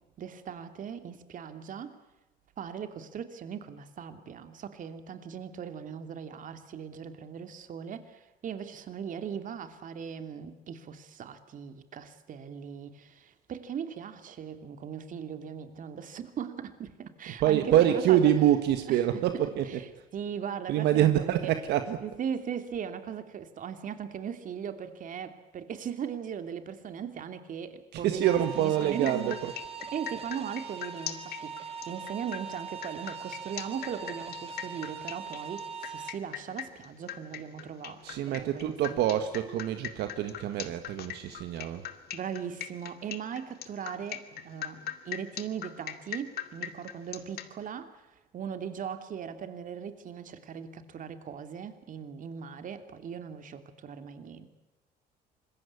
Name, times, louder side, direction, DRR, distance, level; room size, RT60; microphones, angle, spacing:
voice 1, 0.2-2.0 2.6-18.3 18.9-19.0 19.7-21.5 22.0-29.4 29.9-39.1 42.1-48.1 48.3-54.5, right 8 dB, 50° right, 9 dB, 2.8 m, -39 dB
voice 2, 17.3-19.9 20.7-22.1 27.9-29.6 38.0-41.8, right 11 dB, 80° right, 8 dB, 1.8 m, -26 dB
sound 1, 28.2-36.1, right 5 dB, 35° right, 2.8 m, -41 dB
sound 2, 28.5-47.5, left 11 dB, 70° left, 2.3 m, -41 dB
26.0 x 21.5 x 8.5 m, 1.0 s
cardioid pair, 110°, 17 cm